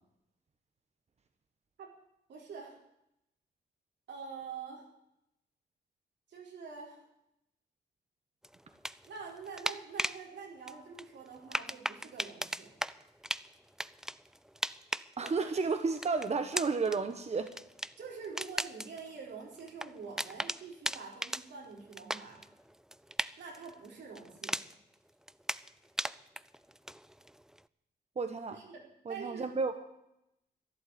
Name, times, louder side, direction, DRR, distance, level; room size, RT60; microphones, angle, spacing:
voice 1, 2.3-2.8 4.1-4.9 6.3-7.0 9.1-12.7 18.0-22.4 23.4-24.6 28.5-28.8 29.1-29.5, right 5 dB, 85° right, -1 dB, 4.8 m, -46 dB
sound 1, 8.4-10.2 10.7-24.9 25.3-27.6, right 1 dB, 5° right, 0.4 m, -38 dB
voice 2, 15.2-17.5 28.2-28.6 29.0-29.8, right 4 dB, 40° right, 8 dB, 1.2 m, -32 dB
12.5 x 11.0 x 8.5 m, 0.82 s
cardioid pair, 90°, 18 cm